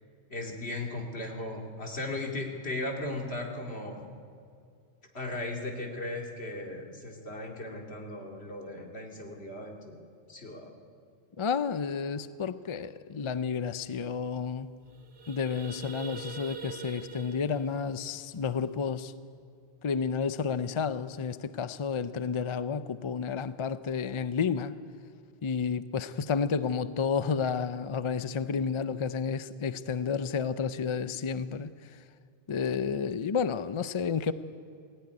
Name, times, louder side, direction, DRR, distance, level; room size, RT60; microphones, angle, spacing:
voice 1, 0.3-4.1 5.1-10.0 10.3-10.7, left 2 dB, 75° left, 1 dB, 2.7 m, -37 dB
voice 2, 11.4-14.7 15.3-19.1 19.8-24.8 25.4-31.7 32.5-34.3, left 6 dB, 40° left, 13 dB, 0.5 m, -31 dB
sound 1, 13.8-13.9 14.2-14.4 14.7-19.1, right 7 dB, 55° right, 1.3 m, -45 dB
18.5 x 16.0 x 9.7 m, 2.3 s
omnidirectional pair, 1.1 m